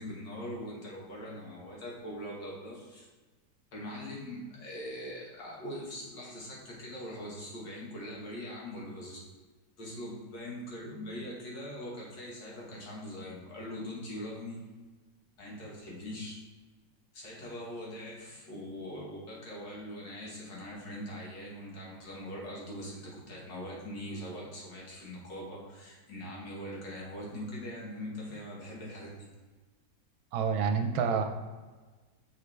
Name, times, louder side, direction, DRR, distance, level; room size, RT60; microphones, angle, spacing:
voice 1, 0.0-3.1 3.7-9.2 9.8-14.6 15.4-16.4 17.1-29.3, equal, 65° left, -4 dB, 2.2 m, -42 dB
voice 2, 30.3-31.2, right 6 dB, 90° right, 6 dB, 1.5 m, -28 dB
6.4 x 5.3 x 3.3 m, 1.3 s
omnidirectional pair, 2.1 m